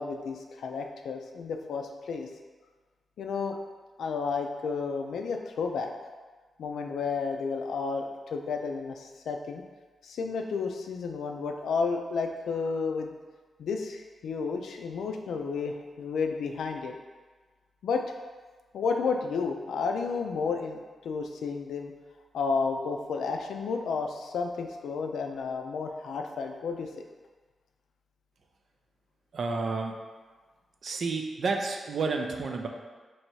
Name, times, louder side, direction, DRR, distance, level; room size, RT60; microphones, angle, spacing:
voice 1, 0.0-2.3 3.2-3.6 4.0-5.9 6.6-9.6 10.0-13.1 13.6-16.9 17.8-18.0 18.7-21.9 22.3-26.9, left 5 dB, 85° left, 4 dB, 0.4 m, -32 dB
voice 2, 29.3-29.9 30.8-32.7, right 4 dB, 65° right, 3 dB, 0.5 m, -30 dB
3.2 x 2.7 x 4.5 m, 1.4 s
cardioid pair, 75°, 0 cm